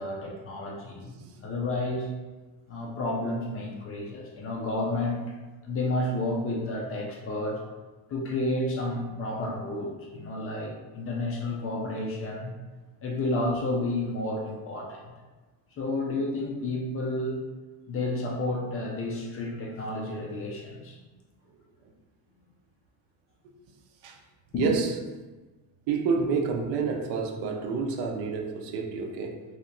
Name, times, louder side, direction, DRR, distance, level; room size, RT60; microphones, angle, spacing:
voice 1, 0.0-1.1 1.4-2.1 2.7-5.4 5.6-7.6 8.1-12.5 13.0-15.1 15.8-17.5 17.9-21.0 24.5-24.7, left 2 dB, 35° left, -1 dB, 0.4 m, -31 dB
voice 2, 24.5-24.9 25.9-29.4, right 5 dB, 70° right, 3 dB, 0.6 m, -29 dB
3.2 x 2.8 x 2.6 m, 1.3 s
cardioid pair, 160°, 43 cm